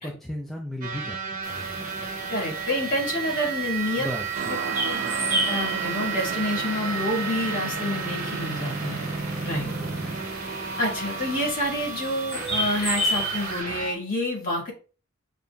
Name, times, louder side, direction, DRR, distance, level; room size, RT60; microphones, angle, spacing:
voice 1, 0.0-2.0 3.9-4.6 5.0-5.3 9.6-10.3, left 1 dB, ahead, -1 dB, 0.4 m, -37 dB
sound 1, 0.8-13.9, right 5 dB, 40° right, 0.9 m, -32 dB
sound 2, 1.4-13.6, equal, 15° right, 2.0 m, -34 dB
voice 2, 2.3-4.1 4.8-9.0 9.4-9.7 10.8-14.7, left 1 dB, 40° left, -2 dB, 1.7 m, -28 dB
sound 3, 4.3-11.5, right 5 dB, 65° right, 0.5 m, -37 dB
6.7 x 2.5 x 2.3 m, 0.36 s
head